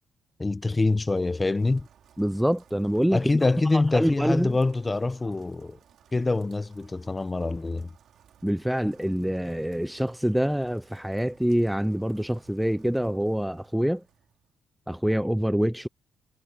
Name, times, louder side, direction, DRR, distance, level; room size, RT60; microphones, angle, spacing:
voice 1, 0.4-1.9 3.1-5.8 6.1-7.9, left 3 dB, 20° left, 0.8 m, -25 dB
Rain, 0.7-14.5, right 9 dB, 65° right, 5.0 m, -59 dB
voice 2, 2.2-3.2 3.7-4.5 5.2-5.3 8.4-14.0 14.9-15.9, equal, 5° right, 0.4 m, -26 dB
cardioid pair, 90°, 0 cm